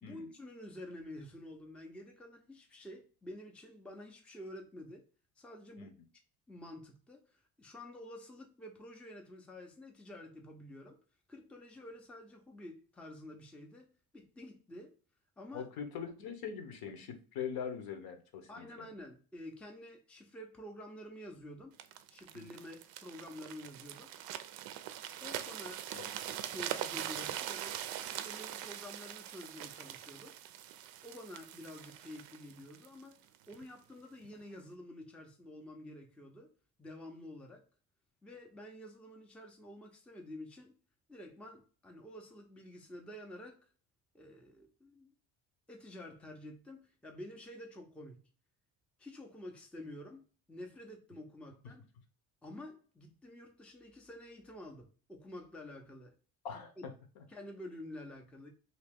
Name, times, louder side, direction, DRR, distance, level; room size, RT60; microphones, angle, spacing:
voice 1, 0.0-5.0 5.4-5.9 6.5-11.0 11.3-14.9 15.4-15.7 18.5-21.8 22.1-24.1 25.2-25.8 26.3-30.3 31.0-36.5 36.8-37.6 38.2-40.7 41.1-43.7 44.1-45.1 45.7-48.2 49.0-51.9 52.4-56.1 56.5-56.9 57.3-58.5, left 1 dB, 5° left, 0.5 m, -49 dB
voice 2, 15.5-18.9 22.3-22.4 25.9-26.1 56.4-57.2, left 7 dB, 65° left, 0.9 m, -42 dB
sound 1, 21.8-33.6 34.2-34.4, right 11 dB, 60° right, 0.5 m, -43 dB
2.8 x 2.8 x 3.4 m
cardioid pair, 120°, 40 cm